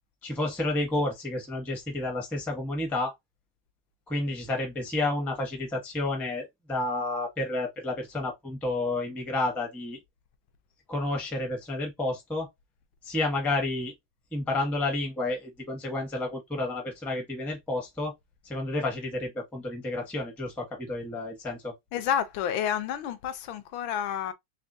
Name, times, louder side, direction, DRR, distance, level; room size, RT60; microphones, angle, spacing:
voice 1, 0.2-3.1 4.1-10.0 10.9-12.5 13.0-13.9 14.3-18.1 18.4-21.7, left 2 dB, ahead, 0.5 m, -30 dB
voice 2, 21.9-24.3, left 9 dB, 80° left, 1.4 m, -29 dB
3.5 x 3.4 x 2.6 m
omnidirectional pair, 2.2 m